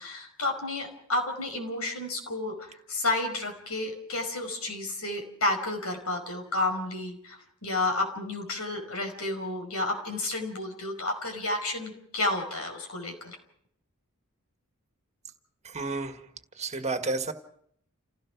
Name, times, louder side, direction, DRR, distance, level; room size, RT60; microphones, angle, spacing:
voice 1, 0.0-13.4, left 2 dB, 85° left, 3 dB, 5.2 m, -31 dB
voice 2, 15.6-16.2 16.6-17.3, right 3 dB, 30° right, 7 dB, 1.7 m, -31 dB
29.0 x 16.5 x 6.1 m, 0.68 s
head